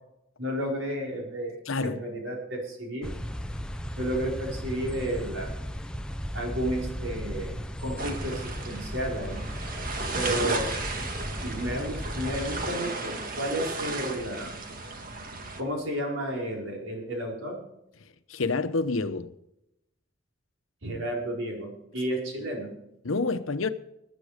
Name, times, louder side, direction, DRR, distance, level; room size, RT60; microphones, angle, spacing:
voice 1, 0.4-3.1 4.0-5.6 6.3-9.5 10.1-10.8 11.4-14.6 15.6-17.6 20.8-22.8, equal, 75° right, 4.7 m, -32 dB
voice 2, 1.7-2.0 18.3-19.3 23.0-23.7, left 3 dB, 90° left, 0.9 m, -28 dB
sound 1, 3.0-12.7, equal, 5° left, 0.8 m, -36 dB
sound 2, 8.0-15.6, right 3 dB, 45° right, 1.7 m, -34 dB
19.5 x 9.2 x 5.1 m
head